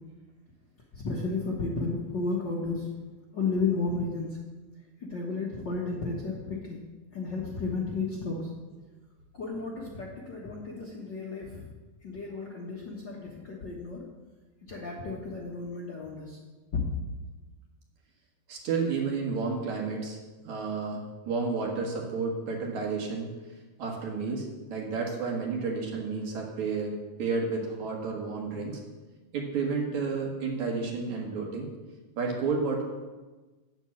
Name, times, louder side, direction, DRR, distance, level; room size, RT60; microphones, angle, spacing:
voice 1, 0.9-2.9 3.3-4.4 5.0-6.8 7.1-8.5 9.3-11.7 12.0-14.1 14.6-16.4 16.7-16.8, left 4 dB, 50° left, -3 dB, 1.4 m, -33 dB
voice 2, 18.5-20.2 20.4-23.3 23.8-28.8 29.3-31.7 32.2-32.8, right 4 dB, 65° right, 0 dB, 2.9 m, -31 dB
9.1 x 8.0 x 7.2 m, 1.2 s
omnidirectional pair, 3.7 m